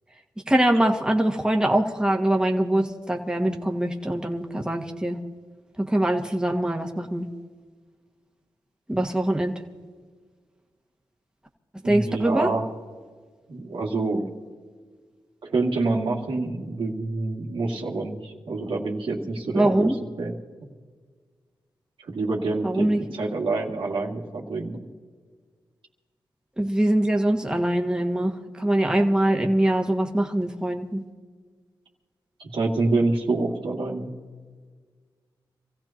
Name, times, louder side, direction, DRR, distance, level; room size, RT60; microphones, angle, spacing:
voice 1, 0.5-5.2 5.8-7.3 8.9-9.6 11.9-12.5 19.6-19.9 22.6-23.0 26.6-31.0, right 1 dB, 10° right, 2 dB, 1.6 m, -23 dB
voice 2, 11.8-12.7 13.5-14.2 15.4-19.9 20.2-20.4 20.6-20.7 22.0-24.8 32.4-34.1, right 3 dB, 80° right, -1 dB, 2.3 m, -27 dB
26.5 x 15.5 x 3.0 m, 1.5 s
cardioid pair, 55°, 9 cm